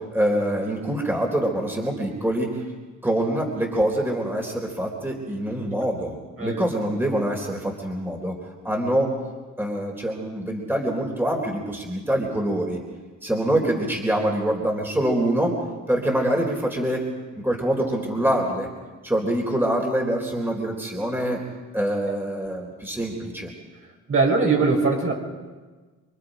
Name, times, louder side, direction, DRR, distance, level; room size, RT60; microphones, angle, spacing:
voice 1, 0.0-2.6 3.0-8.4 8.6-9.1 9.6-12.8 13.2-15.6 15.9-17.0 17.4-18.7 19.0-21.4 21.7-23.5, right 1 dB, 5° right, 1 dB, 4.0 m, -25 dB
voice 2, 24.1-25.1, right 4 dB, 45° right, 0 dB, 6.3 m, -20 dB
27.0 x 23.5 x 5.1 m, 1.3 s
cardioid pair, 90°, 30 cm